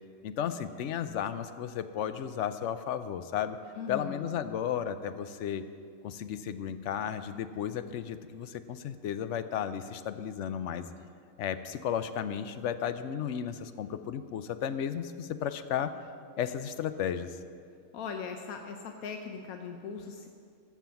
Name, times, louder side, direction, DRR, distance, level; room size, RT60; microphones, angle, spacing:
voice 1, 0.2-3.6 3.9-5.6 6.0-10.9 11.4-15.9 16.4-17.4, left 9 dB, 65° left, 11 dB, 0.8 m, -34 dB
voice 2, 3.7-4.3 17.9-20.3, left 6 dB, 85° left, 5 dB, 1.2 m, -39 dB
13.5 x 7.0 x 7.0 m, 2.3 s
omnidirectional pair, 1.5 m